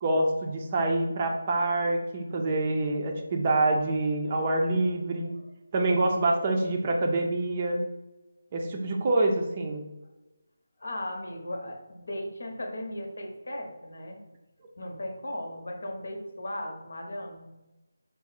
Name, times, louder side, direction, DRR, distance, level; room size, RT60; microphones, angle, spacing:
voice 1, 0.0-5.3 5.7-7.8 8.5-9.8, right 2 dB, 30° right, 2 dB, 0.5 m, -26 dB
voice 2, 10.8-14.2 14.8-17.6, left 1 dB, 70° left, 2 dB, 0.8 m, -37 dB
4.8 x 2.0 x 4.0 m, 1.0 s
figure-of-eight pair, 160°, 0 cm